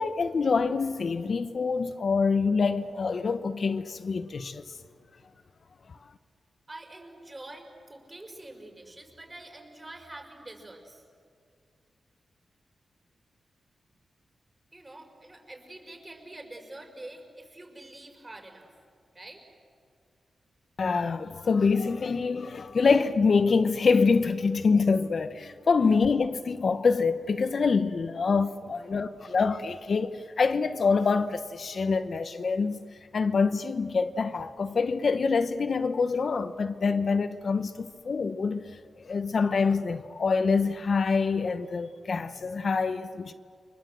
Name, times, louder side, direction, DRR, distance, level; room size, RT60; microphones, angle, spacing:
voice 1, 0.0-4.7 20.8-32.8 33.1-38.6 39.0-43.3, left 4 dB, 55° left, 1.0 m, -25 dB
voice 2, 6.7-11.0 14.7-18.7 19.1-19.4 25.8-25.9 28.7-29.4, right 2 dB, 25° right, 5.6 m, -46 dB
30.0 x 24.5 x 7.8 m
wide cardioid pair, 95°, 0 cm